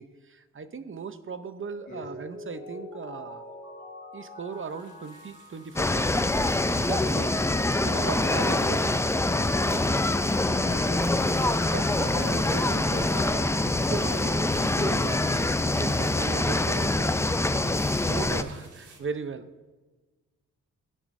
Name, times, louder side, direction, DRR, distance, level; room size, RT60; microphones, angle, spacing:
voice 1, 0.0-3.4 4.1-6.2 6.7-7.3 7.8-9.0 9.7-10.0 11.7-13.0 13.6-17.2 17.6-19.5, right 5 dB, 40° right, 11 dB, 0.8 m, -38 dB
Mallet percussion, 1.6-6.6, left 2 dB, 20° right, 3.8 m, -45 dB
sound 1, 4.5-19.0, right 4 dB, 65° right, 1.7 m, -50 dB
sound 2, 5.8-18.4, left 2 dB, 10° left, 0.5 m, -25 dB
voice 2, 7.8-8.8 9.3-9.5 10.6-11.4 12.1-13.4 18.5-18.6, left 3 dB, 75° left, -2 dB, 2.4 m, -40 dB
14.5 x 9.8 x 2.7 m, 1.3 s
cardioid pair, 60°, 32 cm